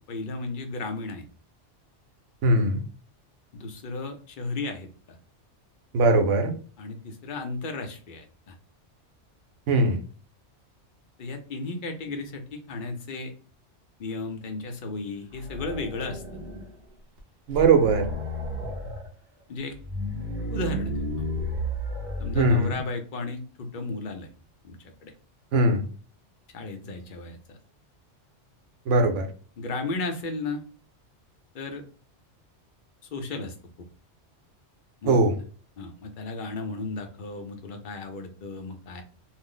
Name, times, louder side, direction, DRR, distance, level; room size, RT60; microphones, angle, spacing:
voice 1, 0.1-1.2 3.5-4.9 6.8-8.6 11.2-13.3 14.0-16.2 19.5-19.8 20.5-21.3 22.2-24.3 24.6-24.8 25.0-25.1 26.5-27.6 29.6-30.6 31.5-31.8 33.1-33.5 35.0-35.2 35.8-39.0, left 3 dB, 55° left, 5 dB, 0.7 m, -34 dB
voice 2, 2.4-2.8 5.9-6.5 9.7-10.0 17.5-18.1 22.3-22.8 25.5-25.8 28.9-29.3 35.1-35.4, right 2 dB, 85° right, 5 dB, 1.0 m, -20 dB
sound 1, 15.3-16.8 17.2-17.3 17.5-19.1 19.7-22.8, equal, 45° right, 0.8 m, -33 dB
2.5 x 2.0 x 3.7 m, 0.39 s
omnidirectional pair, 1.2 m